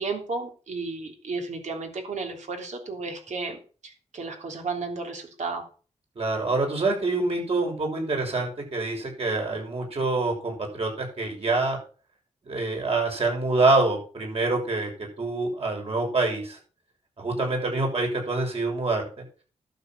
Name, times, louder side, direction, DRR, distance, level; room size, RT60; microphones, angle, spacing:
voice 1, 0.0-5.7, right 4 dB, 75° right, 3 dB, 3.4 m, -33 dB
voice 2, 6.2-11.8 12.5-14.9 15.2-16.6 17.2-19.0, right 3 dB, 55° right, 1 dB, 6.4 m, -26 dB
11.5 x 7.6 x 6.1 m, 0.39 s
cardioid pair, 75°, 12 cm